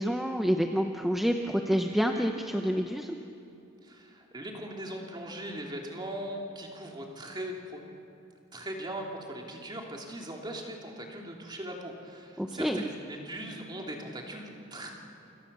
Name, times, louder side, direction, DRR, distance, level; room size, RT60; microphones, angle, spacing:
voice 1, 0.0-3.2 12.4-12.8, equal, ahead, 3 dB, 0.8 m, -28 dB
voice 2, 3.8-7.8 8.5-14.9, right 1 dB, 20° right, 0 dB, 2.9 m, -40 dB
28.5 x 27.0 x 6.8 m, 2.8 s
head